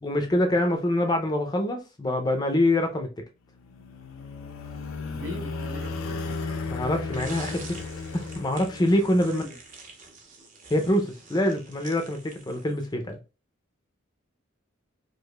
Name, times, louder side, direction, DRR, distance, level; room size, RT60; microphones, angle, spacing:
voice 1, 0.0-3.1 6.7-7.8 8.1-9.4 10.7-13.2, left 1 dB, 20° left, 0.5 m, -25 dB
sound 1, 3.5-9.3, left 3 dB, 80° left, 0.5 m, -35 dB
voice 2, 5.1-6.3 9.0-9.6, equal, 75° right, 1.1 m, -39 dB
sound 2, 7.1-13.0, right 3 dB, 40° right, 0.7 m, -46 dB
4.7 x 2.5 x 2.2 m
head